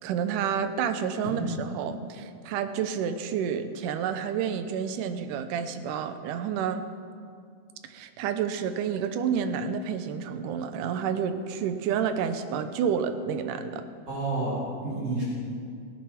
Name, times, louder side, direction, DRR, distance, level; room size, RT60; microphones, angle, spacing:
voice 1, 0.0-6.9 7.9-13.9, right 7 dB, 85° right, 9 dB, 2.4 m, -29 dB
voice 2, 14.1-15.2, right 2 dB, 55° right, -10 dB, 5.8 m, -30 dB
19.5 x 8.9 x 5.9 m, 2.3 s
omnidirectional pair, 3.6 m